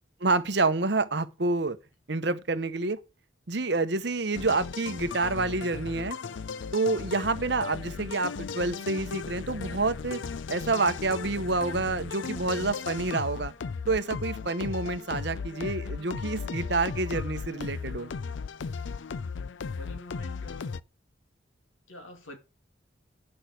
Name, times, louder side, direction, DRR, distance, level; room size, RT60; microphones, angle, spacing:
voice 1, 0.2-1.8 2.1-3.0 3.5-6.2 6.7-10.2 10.5-13.5 13.9-18.1, right 3 dB, 60° right, 1.0 m, -28 dB
sound 1, 4.3-20.8, left 5 dB, 70° left, 0.5 m, -36 dB
voice 2, 19.8-20.7 21.9-22.4, left 1 dB, 90° left, 2.6 m, -45 dB
9.5 x 6.4 x 6.3 m
head